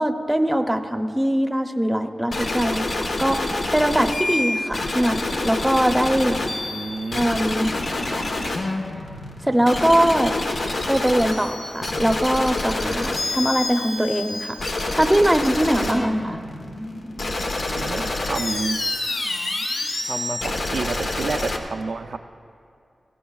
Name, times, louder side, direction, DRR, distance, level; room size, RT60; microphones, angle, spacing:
voice 1, 0.0-6.4 7.1-7.7 9.4-10.3 10.9-14.6 15.0-16.4, right 1 dB, 10° right, 6 dB, 0.7 m, -21 dB
sound 1, 2.3-21.6, left 2 dB, 85° left, 1.1 m, -27 dB
voice 2, 6.4-7.3 15.8-16.3 17.7-18.8 20.1-22.2, right 4 dB, 90° right, 6 dB, 0.4 m, -30 dB
20.0 x 16.0 x 2.4 m, 2.4 s
wide cardioid pair, 95°, 0 cm